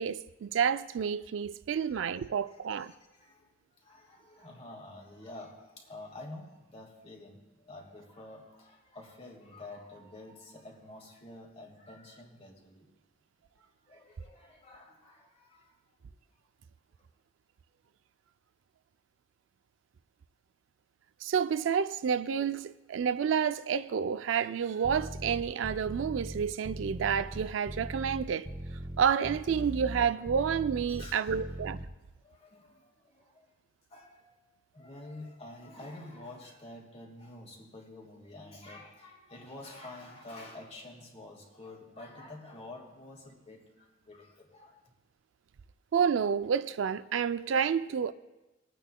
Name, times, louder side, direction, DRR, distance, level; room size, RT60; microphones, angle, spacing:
voice 1, 0.0-2.9 21.2-28.5 29.0-31.8 45.9-48.1, right 7 dB, 75° right, 0.4 m, -29 dB
voice 2, 2.8-12.9 13.6-16.1 30.9-31.4 32.2-33.5 33.9-34.4 34.7-44.9, left 2 dB, 35° left, 1.7 m, -49 dB
sound 1, 24.8-31.8, right 1 dB, 25° right, 0.8 m, -40 dB
26.0 x 9.0 x 2.2 m
head